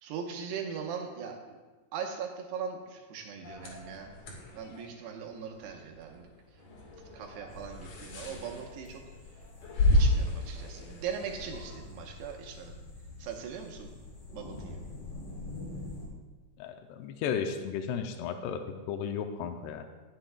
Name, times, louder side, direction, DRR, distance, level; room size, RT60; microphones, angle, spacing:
voice 1, 0.0-1.6 1.9-4.1 4.5-6.3 7.1-9.0 9.9-12.7 13.2-13.9 14.3-14.8, right 7 dB, 90° right, 2 dB, 3.2 m, -40 dB
sound 1, 3.4-11.8, left 1 dB, 60° left, 3.0 m, -32 dB
sound 2, 7.5-16.1, left 3 dB, 40° left, 4.0 m, -46 dB
voice 2, 16.6-19.8, left 7 dB, 85° left, 5 dB, 2.7 m, -34 dB
19.5 x 7.6 x 2.3 m, 1.3 s
omnidirectional pair, 4.7 m